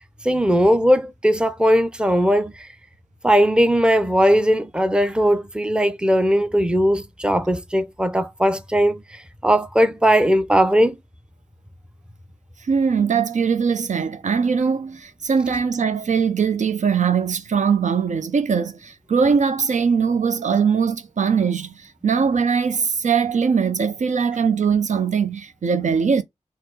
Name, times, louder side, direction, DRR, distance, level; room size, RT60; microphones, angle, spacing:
voice 1, 0.2-2.7 3.2-9.0 9.4-11.0, equal, 5° right, 0.6 m, -18 dB
voice 2, 12.6-26.2, right 6 dB, 65° right, 0.5 m, -21 dB
4.3 x 2.0 x 3.8 m
cardioid pair, 50°, 13 cm